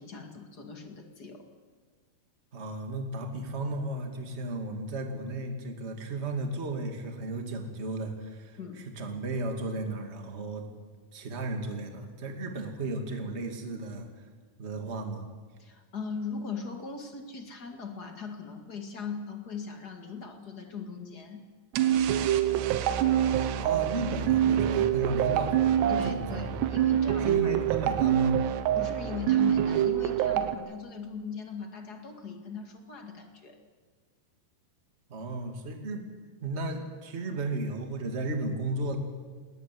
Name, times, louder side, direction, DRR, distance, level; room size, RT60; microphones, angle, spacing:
voice 1, 0.0-1.4 8.6-8.8 15.6-21.4 25.9-27.5 28.8-33.6, left 5 dB, 35° left, 4 dB, 1.7 m, -39 dB
voice 2, 2.5-10.7 11.1-14.1 14.6-15.3 23.6-26.7 27.2-28.4 35.1-36.1 36.4-39.0, right 2 dB, 20° right, 4 dB, 1.8 m, -34 dB
sound 1, 21.7-30.6, right 11 dB, 85° right, 3.2 m, -25 dB
20.0 x 18.5 x 9.5 m, 1.5 s
omnidirectional pair, 4.8 m